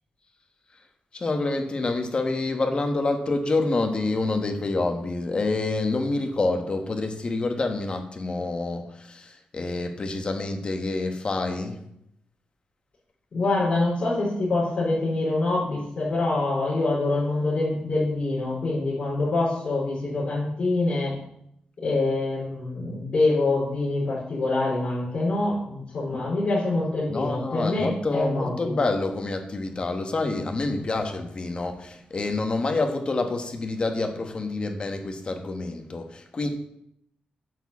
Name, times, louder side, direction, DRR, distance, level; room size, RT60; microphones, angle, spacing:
voice 1, 1.1-11.8 26.1-26.2 27.1-36.5, left 3 dB, 35° left, 5 dB, 1.2 m, -27 dB
voice 2, 13.3-21.1 21.8-28.7, left 2 dB, 55° left, -9 dB, 4.0 m, -25 dB
8.9 x 4.5 x 7.2 m, 0.76 s
wide cardioid pair, 125°, 3 cm